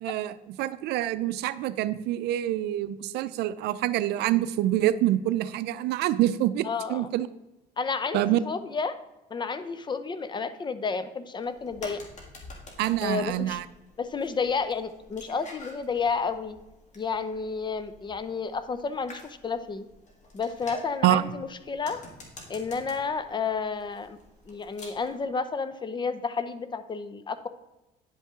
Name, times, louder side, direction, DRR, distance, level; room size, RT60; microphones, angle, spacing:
voice 1, 0.0-7.3 8.1-8.4 12.8-13.6 21.0-21.2, right 14 dB, 80° right, 15 dB, 0.4 m, -26 dB
voice 2, 6.6-7.1 7.8-9.0 9.3-12.0 13.0-13.6 14.0-16.6 17.0-19.9 20.3-22.0 22.5-24.2 24.5-27.5, left 5 dB, 25° left, 12 dB, 0.6 m, -31 dB
sound 1, 11.4-25.2, left 2 dB, 45° left, 1.8 m, -48 dB
9.8 x 5.3 x 3.7 m, 0.99 s
cardioid pair, 110°, 17 cm